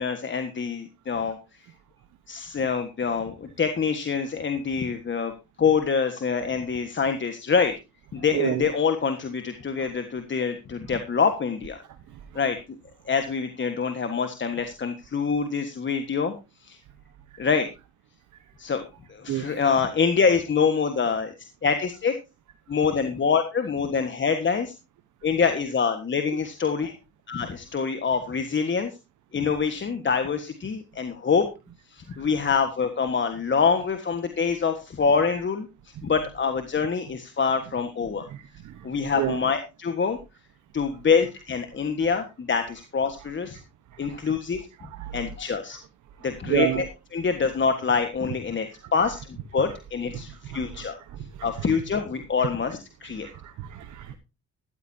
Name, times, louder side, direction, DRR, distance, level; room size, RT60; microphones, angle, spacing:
voice 1, 0.0-1.4 2.3-5.3 5.6-7.7 8.1-11.8 12.3-12.6 13.1-16.3 16.6-16.8 17.4-17.7 18.6-18.8 19.1-21.3 21.6-22.1 22.7-24.7 25.2-26.9 27.3-28.9 29.3-31.5 31.9-35.7 36.0-38.3 38.8-40.2 40.7-43.6 44.0-44.7 45.1-45.8 46.2-46.9 47.1-48.7 48.9-51.0 51.4-53.3, left 5 dB, 40° left, 7 dB, 1.5 m, -25 dB
voice 2, 38.3-38.7 39.2-39.4 45.0-45.1 46.4-46.8 50.5-50.8 53.2-54.1, right 13 dB, 75° right, 8 dB, 1.2 m, -28 dB
14.0 x 13.5 x 2.8 m, 0.27 s
cardioid pair, 90°, 30 cm